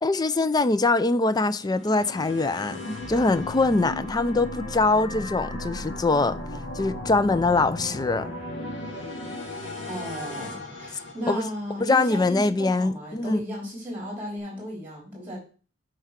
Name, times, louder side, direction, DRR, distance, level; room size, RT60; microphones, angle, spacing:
voice 1, 0.0-6.4 6.7-8.3 11.3-11.5 11.8-13.4, left 3 dB, 20° left, 0.4 m, -23 dB
sound 1, 1.6-11.8, left 1 dB, 70° left, 2.1 m, -36 dB
voice 2, 9.9-15.4, equal, 10° right, 4.1 m, -35 dB
8.4 x 4.6 x 5.9 m
head